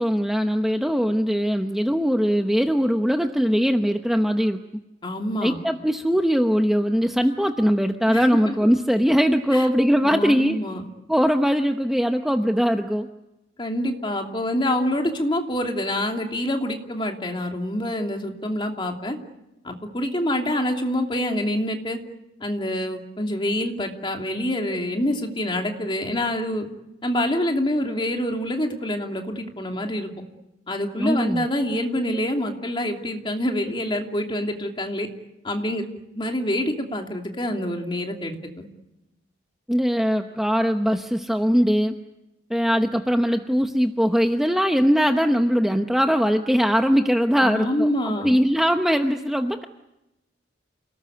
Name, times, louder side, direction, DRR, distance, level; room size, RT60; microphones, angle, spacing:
voice 1, 0.0-4.6 5.4-10.6 11.1-13.1 31.0-31.5 39.7-42.0 42.5-49.6, equal, ahead, 5 dB, 0.9 m, -21 dB
voice 2, 5.0-5.6 8.1-8.5 9.5-9.7 10.0-10.9 13.6-19.2 19.6-22.0 22.4-26.7 27.0-30.1 30.7-35.1 35.4-35.8 36.1-38.7 47.4-48.4, left 1 dB, 25° left, 2 dB, 2.9 m, -26 dB
29.0 x 19.0 x 9.5 m, 0.93 s
head